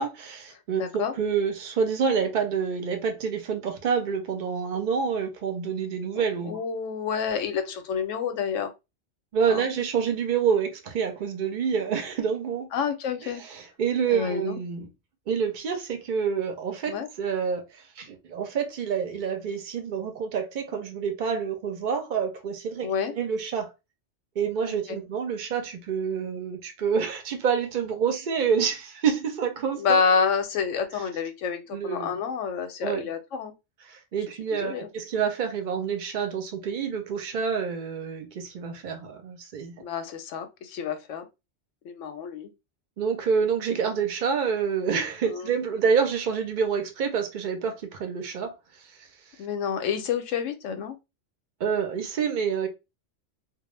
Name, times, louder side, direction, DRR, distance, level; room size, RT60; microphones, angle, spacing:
voice 1, 0.0-6.6 9.3-12.7 13.2-14.9 15.3-17.6 18.0-22.9 23.2-23.7 24.4-30.0 31.7-32.2 32.8-33.1 33.9-39.7 43.0-48.6 49.0-49.1 51.6-52.7, right 6 dB, 55° right, 0.6 m, -27 dB
voice 2, 0.8-1.1 6.2-8.7 9.5-9.7 12.7-13.4 14.1-14.6 16.9-17.1 22.8-23.1 24.6-25.0 29.7-33.5 34.5-34.9 39.8-41.3 41.8-42.5 45.2-45.5 49.4-51.0, left 6 dB, 90° left, 0.9 m, -28 dB
2.2 x 2.1 x 3.1 m
omnidirectional pair, 1.2 m